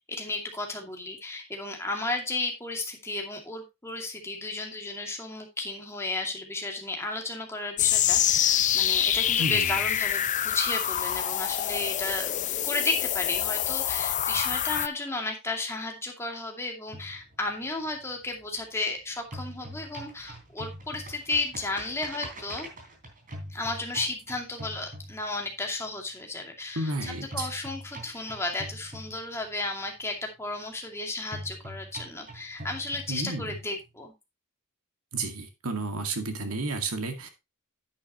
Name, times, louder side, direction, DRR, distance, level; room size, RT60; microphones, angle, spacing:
voice 1, 0.1-12.3 12.6-22.7 23.5-34.1, left 2 dB, 10° left, 1 dB, 2.4 m, -33 dB
sound 1, 7.8-14.9, left 11 dB, 35° left, 0.4 m, -26 dB
voice 2, 9.4-9.8 26.8-27.5 33.1-33.6 35.1-37.3, right 2 dB, 80° right, 6 dB, 2.0 m, -32 dB
sound 2, 16.9-18.9 19.2-25.6 27.3-29.6 31.3-33.6, equal, 40° right, 3.4 m, -43 dB
9.7 x 8.8 x 3.0 m, 0.24 s
head